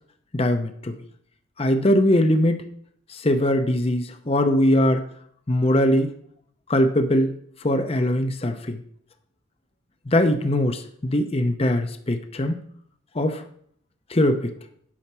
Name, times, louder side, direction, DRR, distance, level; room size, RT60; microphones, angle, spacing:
voice 1, 0.3-0.9 1.6-2.7 3.1-5.0 5.5-6.1 6.7-7.3 7.6-8.8 10.1-12.6 13.1-13.4 14.1-14.5, left 1 dB, 30° left, 7 dB, 0.7 m, -21 dB
8.6 x 5.8 x 6.0 m, 0.64 s
head